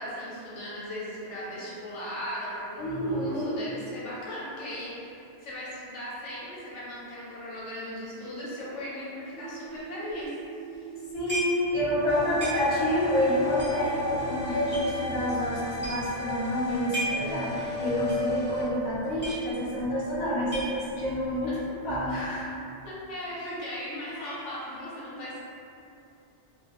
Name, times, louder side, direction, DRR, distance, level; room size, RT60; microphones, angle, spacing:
voice 1, 0.0-10.3 10.7-10.9 22.8-25.4, equal, 80° left, -8 dB, 1.0 m, -37 dB
voice 2, 2.8-3.5 11.1-21.6 21.8-22.6 24.1-24.3, left 1 dB, 45° left, -9 dB, 0.8 m, -28 dB
sound 1, 9.3-15.3, right 5 dB, 55° right, 0.7 m, -42 dB
sound 2, 11.3-11.7 12.0-12.1 12.4-12.9 13.5-14.9 15.4-15.5 15.7-16.2 16.7-17.3 17.6-17.7 18.1-18.3 18.6-18.7 18.9-19.8 20.1-21.1, right 1 dB, 15° left, 0.5 m, -35 dB
sound 3, 12.1-18.6, left 2 dB, 20° right, 0.9 m, -34 dB
2.4 x 2.2 x 2.8 m, 2.6 s
omnidirectional pair, 1.2 m